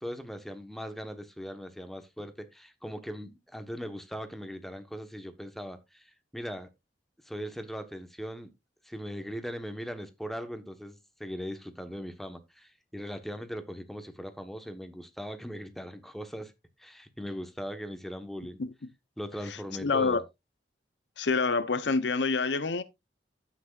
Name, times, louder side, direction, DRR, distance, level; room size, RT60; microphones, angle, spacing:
voice 1, 0.0-6.1 6.3-6.7 7.3-8.5 8.9-16.5 16.8-18.6 19.2-20.2, equal, ahead, 1.2 m, -39 dB
voice 2, 19.5-20.2 21.2-22.8, left 4 dB, 75° left, 0.8 m, -27 dB
14.5 x 6.2 x 2.4 m
head